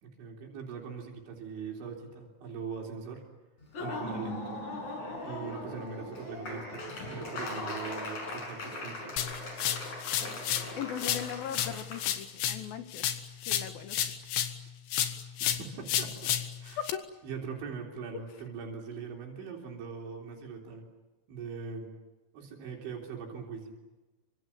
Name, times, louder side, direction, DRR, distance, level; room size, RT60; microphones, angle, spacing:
voice 1, 0.0-3.2 3.8-4.6 5.2-9.2 15.4-16.4 16.6-16.8 17.2-20.9 21.3-21.9 22.3-23.7, right 5 dB, 80° right, 0 dB, 5.8 m, -41 dB
Laughter / Applause, 3.6-12.0, left 2 dB, 40° left, 7.4 m, -39 dB
sound 1, 9.2-10.7 11.0-14.6 14.9-16.9, left 10 dB, 85° left, 4.1 m, -32 dB
voice 2, 10.8-13.0 13.5-14.0 16.9-17.0, left 9 dB, 65° left, 9 dB, 2.7 m, -39 dB
29.0 x 25.0 x 7.3 m, 1.1 s
omnidirectional pair, 5.3 m